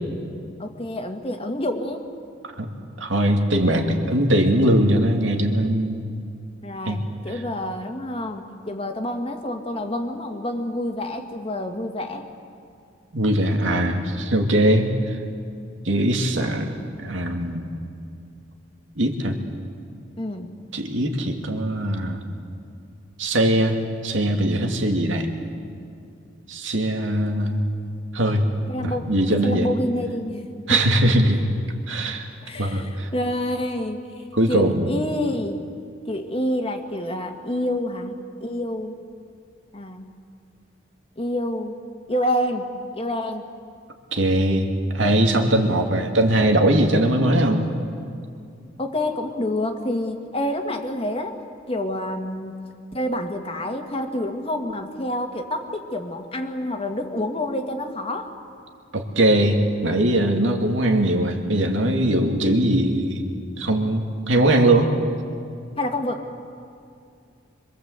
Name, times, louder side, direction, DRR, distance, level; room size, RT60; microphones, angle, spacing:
voice 1, 0.6-2.0 6.6-12.3 20.2-20.6 28.7-29.1 29.4-30.8 32.5-34.0 34.5-35.6 36.1-39.0 39.7-40.1 41.2-41.8 42.1-43.4 45.6-46.0 48.8-51.4 51.7-52.7 52.9-58.3 65.8-66.3, left 1 dB, 30° left, 4 dB, 1.8 m, -28 dB
voice 2, 3.0-6.0 6.8-7.0 13.1-15.2 15.8-16.7 17.0-17.7 19.0-19.4 20.7-22.2 23.2-25.3 26.5-27.6 28.1-28.5 28.8-29.7 30.7-31.4 31.9-32.3 32.6-33.1 34.3-34.9 44.1-47.7 58.9-63.2 63.6-64.9, right 1 dB, 70° right, 3 dB, 2.5 m, -21 dB
26.0 x 22.5 x 8.1 m, 2.4 s
head